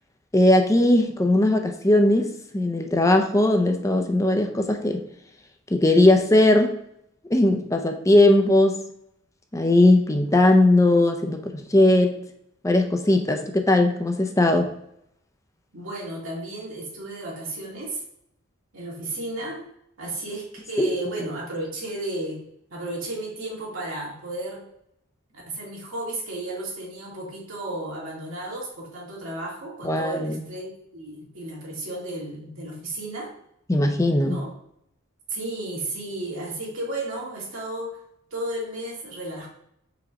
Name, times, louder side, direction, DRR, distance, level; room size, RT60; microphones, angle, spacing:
voice 1, 0.3-5.0 5.7-6.8 7.3-8.8 9.5-12.2 12.6-14.7 20.8-20.9 29.8-30.4 33.7-34.4, left 1 dB, 15° left, 4 dB, 0.5 m, -19 dB
voice 2, 15.7-18.0 18.7-19.6 20.0-22.4 22.7-24.6 25.3-33.3 34.2-34.5 35.3-38.0 38.3-39.5, right 1 dB, 75° right, -4 dB, 2.2 m, -33 dB
4.9 x 3.9 x 4.8 m, 0.74 s
head